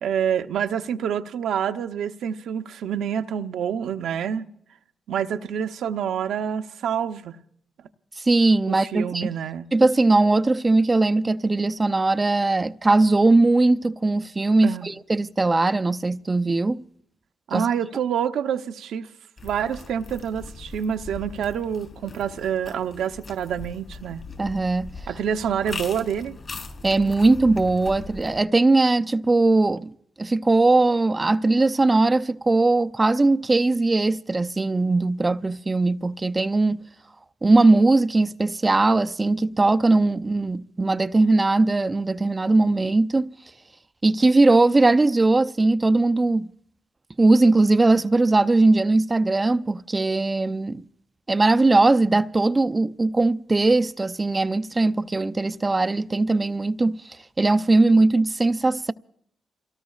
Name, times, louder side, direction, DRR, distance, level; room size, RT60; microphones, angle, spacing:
voice 1, 0.0-4.5 5.1-7.4 8.7-9.7 14.6-14.9 17.5-19.1 19.4-24.2 25.1-26.4, right 8 dB, 85° right, 0.8 m, -27 dB
voice 2, 8.2-9.3 9.7-16.8 17.5-17.7 24.4-24.9 26.8-29.9 30.2-36.8 37.4-43.3 44.0-46.5 47.2-50.8 51.3-58.9, right 2 dB, 25° right, 0.5 m, -20 dB
sound 1, 19.4-28.4, left 3 dB, 45° left, 4.1 m, -40 dB
29.0 x 18.0 x 2.4 m
cardioid pair, 80°, 0 cm